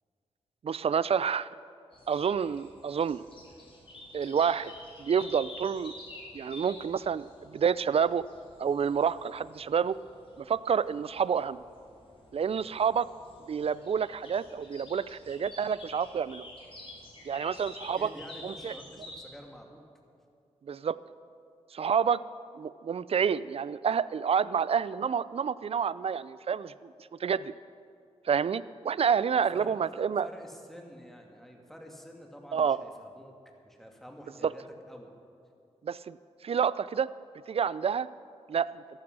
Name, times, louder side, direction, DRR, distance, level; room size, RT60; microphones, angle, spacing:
voice 1, 0.6-1.5 2.1-3.2 4.1-4.7 5.0-5.9 6.3-8.2 8.6-10.0 10.4-11.6 12.3-13.1 13.5-16.5 17.3-18.1 18.4-18.7 20.7-21.0 21.7-22.2 22.5-26.9 27.2-27.5 28.3-30.3 32.5-32.8 34.4-34.5 35.8-36.2 36.4-37.1 37.5-38.1 38.5-38.7, right 7 dB, 55° right, 18 dB, 0.4 m, -28 dB
sound 1, 1.9-19.2, left 1 dB, 50° left, 3.9 m, -50 dB
voice 2, 17.9-19.8 29.5-33.3 33.6-35.1, equal, 5° left, 1 dB, 2.4 m, -48 dB
13.5 x 11.5 x 6.1 m, 2.4 s
cardioid pair, 50°, 12 cm